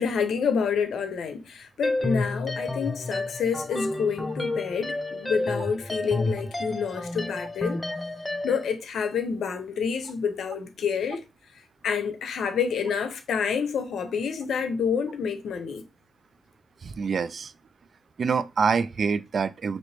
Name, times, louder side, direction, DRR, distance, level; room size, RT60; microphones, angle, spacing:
voice 1, 0.0-7.8 8.4-11.2 11.8-15.8, left 6 dB, 85° left, 0.7 m, -28 dB
sound 1, 1.8-8.7, left 2 dB, 15° left, 0.5 m, -30 dB
voice 2, 16.8-17.5 18.2-19.8, right 5 dB, 60° right, 0.3 m, -26 dB
4.1 x 3.0 x 3.3 m
cardioid pair, 75°, 0 cm